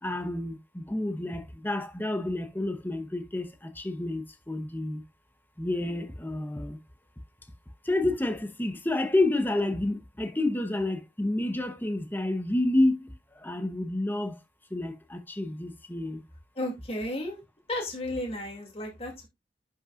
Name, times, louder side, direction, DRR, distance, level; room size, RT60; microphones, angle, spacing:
voice 1, 0.0-5.0 5.6-6.8 7.8-14.4 14.7-16.2, left 1 dB, 10° left, 1.0 m, -29 dB
voice 2, 16.6-17.4 17.7-19.3, left 1 dB, 35° left, 2.6 m, -33 dB
11.0 x 5.6 x 2.5 m
head